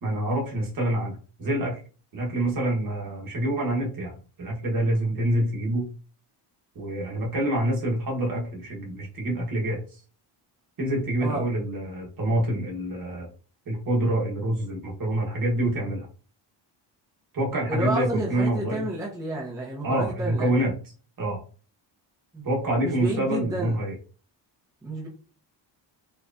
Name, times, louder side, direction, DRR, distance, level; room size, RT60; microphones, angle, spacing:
voice 1, 0.0-1.1 1.4-1.8 2.1-4.1 4.4-5.9 6.7-10.0 10.8-13.3 13.7-16.1 17.3-18.9 19.8-20.7 21.2-21.4 22.4-23.9, right 1 dB, 50° right, -2 dB, 1.2 m, -26 dB
voice 2, 17.7-20.6 22.3-22.4 22.8-23.8 24.8-25.1, right 1 dB, 10° right, -4 dB, 0.7 m, -30 dB
4.4 x 2.4 x 2.5 m, 0.39 s
cardioid pair, 155°, 45 cm